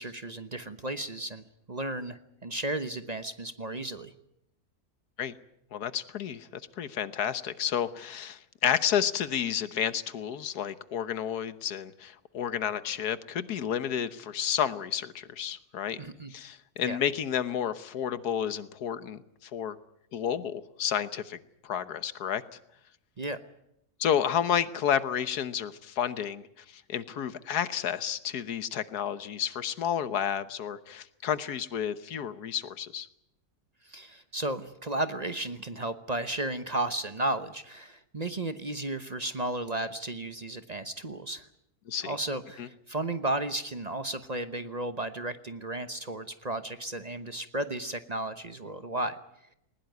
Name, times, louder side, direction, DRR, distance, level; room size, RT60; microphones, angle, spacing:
voice 1, 0.0-4.1 16.0-16.3 16.8-17.0 23.2-23.4 33.8-41.4 42.0-49.2, right 2 dB, 30° right, 10 dB, 1.0 m, -34 dB
voice 2, 5.7-16.0 16.3-19.8 20.1-22.4 24.0-33.1 41.9-42.2 42.6-42.7, left 9 dB, 90° left, 14 dB, 1.6 m, -31 dB
20.0 x 20.0 x 9.4 m, 0.80 s
omnidirectional pair, 1.6 m